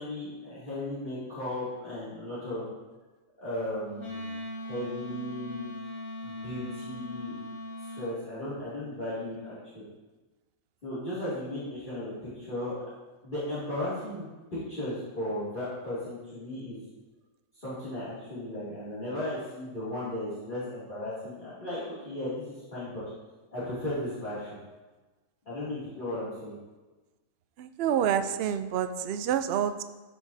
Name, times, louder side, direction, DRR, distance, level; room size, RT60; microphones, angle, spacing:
voice 1, 0.0-2.6 3.4-5.7 6.2-7.3 7.8-9.8 10.8-12.7 13.2-16.8 17.6-23.0 23.5-24.6 25.5-26.6, left 1 dB, 30° left, -12 dB, 2.8 m, -36 dB
Wind instrument woodwind instrument, 4.0-8.2, left 1 dB, 75° left, 2.1 m, -39 dB
voice 2, 27.6-29.8, right 9 dB, 85° right, 10 dB, 0.5 m, -28 dB
13.5 x 5.9 x 2.7 m, 1.2 s
omnidirectional pair, 1.6 m